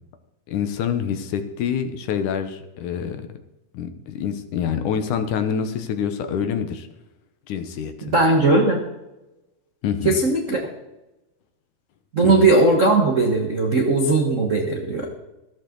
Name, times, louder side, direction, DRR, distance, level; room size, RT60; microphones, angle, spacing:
voice 1, 0.5-3.3 3.7-6.9 7.5-8.1 9.8-10.2 12.2-12.4, left 8 dB, 70° left, 8 dB, 2.4 m, -26 dB
voice 2, 8.0-8.8 10.0-10.6 12.1-15.1, right 2 dB, 50° right, 2 dB, 0.9 m, -18 dB
14.5 x 13.5 x 3.9 m, 0.97 s
omnidirectional pair, 3.9 m